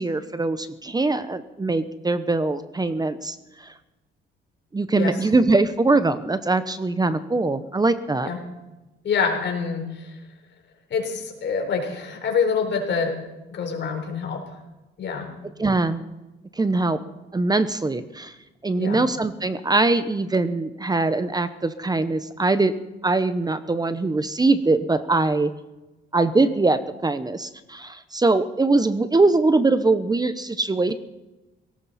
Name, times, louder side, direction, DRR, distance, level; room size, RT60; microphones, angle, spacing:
voice 1, 0.0-3.7 4.7-8.3 15.6-16.0 16.6-17.0 17.3-18.3 18.6-22.7 23.0-25.5 26.1-30.9, right 3 dB, 20° right, 12 dB, 0.9 m, -22 dB
voice 2, 9.0-10.1 10.9-13.2 13.5-14.6 15.0-15.3 18.8-19.0, left 5 dB, 65° left, 3 dB, 4.0 m, -26 dB
18.0 x 17.5 x 4.3 m, 1.1 s
cardioid pair, 90°, 20 cm